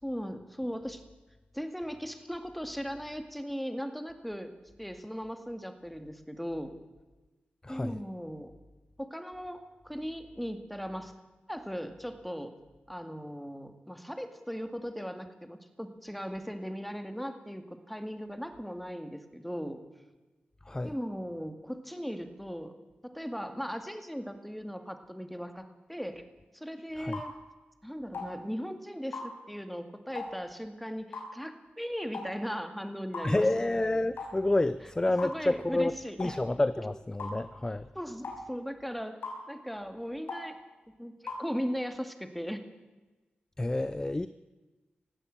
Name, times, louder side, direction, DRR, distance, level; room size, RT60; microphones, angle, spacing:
voice 1, 0.0-1.0 1.5-4.5 4.8-6.7 7.7-8.5 9.0-11.1 11.5-12.5 12.9-19.8 20.8-22.7 23.0-26.2 26.5-27.3 27.8-33.5 35.2-36.4 36.8-36.9 37.9-39.2 39.5-40.6 40.9-42.6, equal, ahead, 7 dB, 2.1 m, -38 dB
voice 2, 7.6-8.0 20.7-20.9 27.0-27.2 33.2-35.9 36.2-37.9 43.6-44.3, left 2 dB, 20° left, 14 dB, 0.6 m, -29 dB
sound 1, 27.1-27.3 28.1-28.3 29.1-29.3 30.1-30.3 31.1-31.3 32.1-32.3 33.1-33.3 34.2-34.3 35.2-35.4 36.2-36.4 37.2-37.4 38.2-38.4 39.2-39.4 40.3-40.5 41.3-41.4, left 3 dB, 85° left, 5.7 m, -38 dB
19.0 x 15.5 x 8.7 m, 1.2 s
wide cardioid pair, 85°, 3 cm